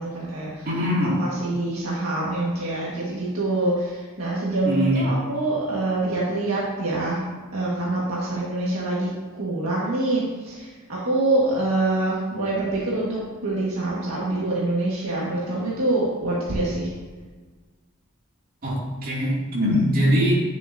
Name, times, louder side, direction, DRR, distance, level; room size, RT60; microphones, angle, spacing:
voice 1, 0.0-0.7 1.2-7.2 7.5-9.1 9.4-16.9, right 2 dB, 70° right, -6 dB, 1.7 m, -25 dB
voice 2, 0.6-1.3 4.6-5.0 18.6-20.3, equal, 40° right, -6 dB, 2.6 m, -22 dB
9.8 x 7.0 x 2.7 m, 1.4 s
head